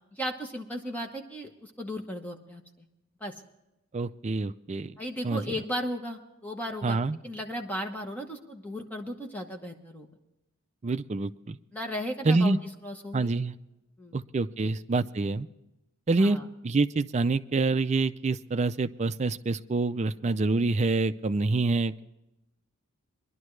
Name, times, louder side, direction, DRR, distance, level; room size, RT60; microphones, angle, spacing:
voice 1, 0.1-2.9 3.2-3.3 5.0-7.0 7.2-10.1 11.7-13.3 14.0-14.1 14.6-14.7 16.2-16.5, equal, 5° left, 2 dB, 1.0 m, -36 dB
voice 2, 3.9-5.0 5.2-5.4 6.8-7.2 10.8-11.6 12.2-12.6 13.1-13.5 14.1-15.5 16.1-16.4 16.6-22.0, right 3 dB, 30° right, 12 dB, 0.4 m, -26 dB
22.0 x 11.5 x 3.2 m, 0.93 s
head